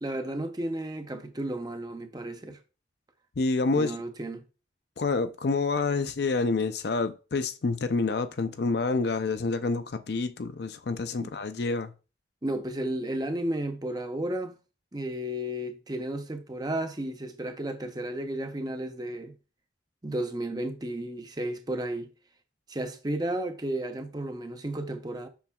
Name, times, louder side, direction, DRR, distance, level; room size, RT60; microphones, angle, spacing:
voice 1, 0.0-2.6 3.8-4.4 11.2-11.3 12.4-14.6 14.9-19.3 20.0-22.1 22.7-25.3, right 1 dB, 20° right, 0.6 m, -33 dB
voice 2, 3.4-4.0 5.0-11.9, left 3 dB, 60° left, 0.5 m, -28 dB
7.0 x 5.8 x 2.3 m
head